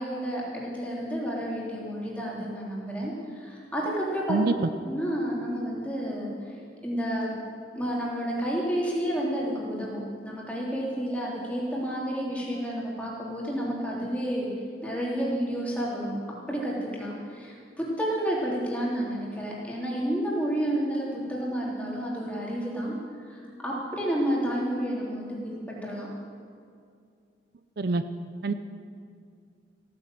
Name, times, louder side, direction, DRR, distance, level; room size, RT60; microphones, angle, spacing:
voice 1, 0.0-4.4 4.9-6.3 6.8-7.3 7.7-14.5 14.8-16.2 16.5-23.0 23.3-26.1, equal, 10° left, -5 dB, 3.2 m, -30 dB
voice 2, 4.3-4.5 27.8-28.0 28.4-28.5, right 3 dB, 60° right, 11 dB, 0.5 m, -25 dB
15.5 x 9.7 x 7.6 m, 2.3 s
head